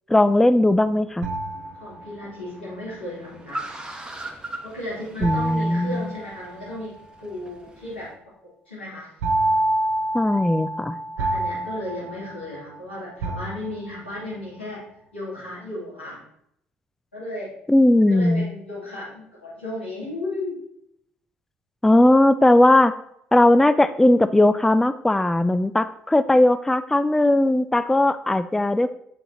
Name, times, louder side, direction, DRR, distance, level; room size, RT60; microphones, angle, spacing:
voice 1, 0.1-1.3 5.2-6.0 10.1-11.0 17.7-18.5 21.8-22.9 23.3-28.9, left 1 dB, 5° left, 12 dB, 0.3 m, -18 dB
Car, 0.7-8.1, right 1 dB, 15° right, 1.1 m, -41 dB
sound 1, 1.2-2.4 5.2-6.8 9.2-12.8 13.2-14.1, right 1 dB, 70° right, 0.8 m, -27 dB
voice 2, 1.8-3.7 4.6-8.1 8.7-9.1 11.2-14.9 15.1-16.2 17.1-17.5 18.1-20.6, left 1 dB, 90° left, -8 dB, 2.7 m, -34 dB
7.6 x 6.2 x 2.8 m, 0.73 s
figure-of-eight pair, 50°, 6 cm